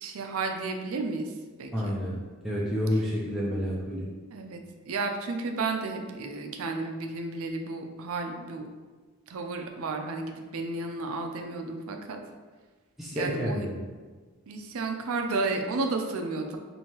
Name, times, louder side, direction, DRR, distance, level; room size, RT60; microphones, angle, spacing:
voice 1, 0.0-2.0 2.9-3.0 4.3-4.6 4.9-8.7 9.3-12.2 13.1-13.7 14.5-16.6, right 3 dB, 80° right, 4 dB, 0.5 m, -32 dB
voice 2, 1.7-2.2 2.4-4.1 13.0-13.8, equal, ahead, -7 dB, 0.4 m, -29 dB
4.5 x 2.7 x 2.9 m, 1.4 s
head